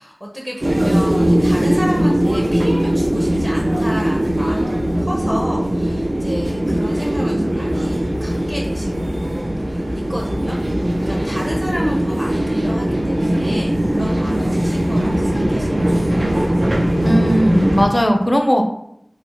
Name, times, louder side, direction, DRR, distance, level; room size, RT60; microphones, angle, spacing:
voice 1, 0.0-10.6 11.0-16.5, equal, 10° right, -3 dB, 0.7 m, -30 dB
sound 1, 0.6-17.9, right 1 dB, 55° right, 0.4 m, -19 dB
voice 2, 17.0-18.6, equal, 35° left, 3 dB, 0.5 m, -17 dB
4.1 x 2.0 x 2.9 m, 0.74 s
wide cardioid pair, 40°, 0 cm